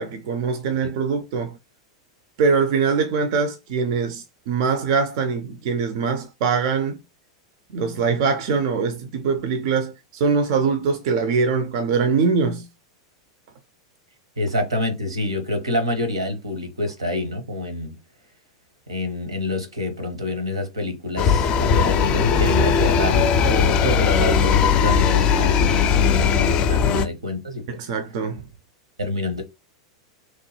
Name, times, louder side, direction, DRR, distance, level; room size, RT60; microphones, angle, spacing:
voice 1, 0.0-1.6 2.4-7.0 7.7-12.7 26.9-27.0 27.8-28.4, right 5 dB, 55° right, 0.4 m, -23 dB
voice 2, 14.4-18.0 18.9-27.8 29.0-29.4, left 1 dB, 85° right, 0.9 m, -27 dB
sound 1, 21.2-27.1, left 6 dB, 35° left, 0.4 m, -18 dB
3.0 x 2.2 x 3.0 m
figure-of-eight pair, 95°, 3 cm